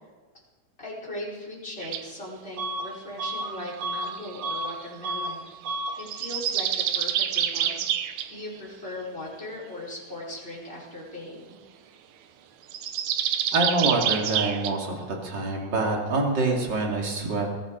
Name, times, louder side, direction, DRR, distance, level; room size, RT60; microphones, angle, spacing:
voice 1, 0.8-11.6, left 1 dB, 15° left, -4 dB, 4.9 m, -39 dB
sound 1, 1.8-2.1 3.6-4.8 6.0-8.3 12.7-14.7, right 10 dB, 70° right, 2.0 m, -27 dB
Bus / Alarm, 2.6-2.9 3.2-4.8 5.0-5.4 5.6-6.0, right 1 dB, 90° right, 3.5 m, -31 dB
voice 2, 13.5-17.7, right 2 dB, 35° right, 0 dB, 3.1 m, -26 dB
21.5 x 15.0 x 4.0 m, 1.4 s
omnidirectional pair, 3.6 m